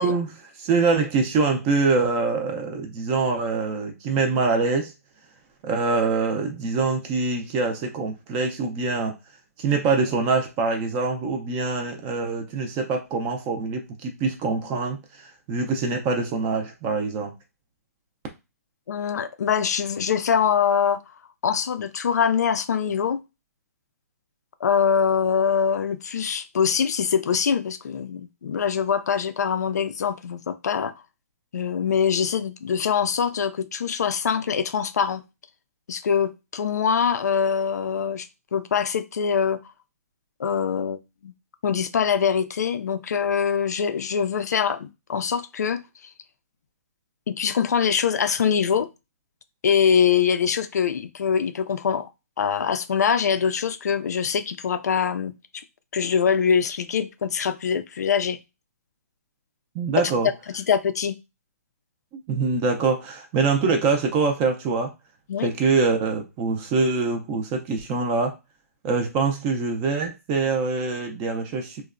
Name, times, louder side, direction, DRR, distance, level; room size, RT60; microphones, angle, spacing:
voice 1, 0.0-4.9 5.6-9.1 9.6-17.3 59.7-60.3 62.1-64.9 65.4-68.3 68.8-71.8, right 4 dB, 20° right, 0.3 m, -24 dB
voice 2, 18.9-21.0 21.4-23.2 24.6-30.9 31.5-35.2 35.9-38.3 38.5-39.6 40.4-41.3 41.6-45.8 47.3-48.9 49.6-52.1 52.4-55.3 55.9-58.4 60.5-61.2 65.3-65.5, left 7 dB, 80° left, 0.4 m, -23 dB
2.9 x 2.1 x 2.4 m
hypercardioid pair, 160°, 9 cm